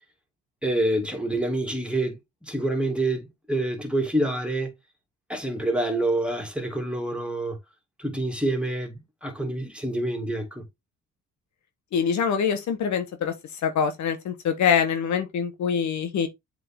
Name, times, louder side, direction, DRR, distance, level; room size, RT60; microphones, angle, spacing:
voice 1, 0.6-4.7 5.3-7.6 8.0-10.6, right 1 dB, 5° right, 2.7 m, -27 dB
voice 2, 11.9-13.3 13.6-16.3, left 7 dB, 70° left, 1.3 m, -24 dB
7.7 x 3.7 x 3.7 m
cardioid pair, 90°, 30 cm